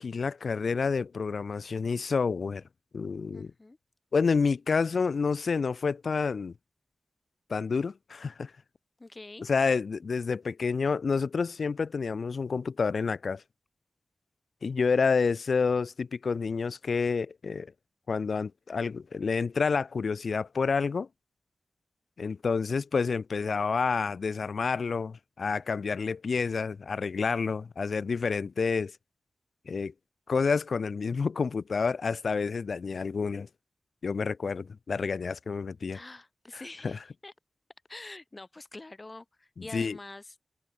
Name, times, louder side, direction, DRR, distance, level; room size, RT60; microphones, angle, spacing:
voice 1, 0.0-2.6 2.9-3.5 4.1-6.5 7.5-8.5 9.5-13.4 14.6-17.7 18.1-21.1 22.2-28.9 29.7-29.9 30.3-33.5 34.0-36.0 36.8-37.0 39.7-40.0, left 5 dB, 70° left, 2.2 m, -29 dB
voice 2, 3.3-3.8 9.0-9.5 35.9-37.3 37.9-40.4, left 2 dB, 30° left, 6.4 m, -46 dB
wide cardioid pair, 120°, 0 cm